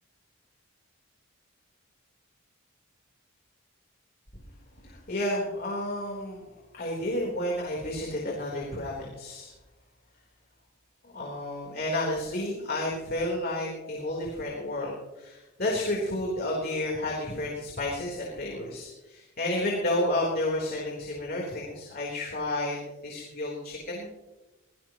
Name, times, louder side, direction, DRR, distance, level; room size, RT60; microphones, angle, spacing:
voice 1, 4.8-9.5 11.0-22.8 23.0-24.1, left 1 dB, 45° left, -3 dB, 3.8 m, -31 dB
24.5 x 17.5 x 3.0 m, 1.1 s
head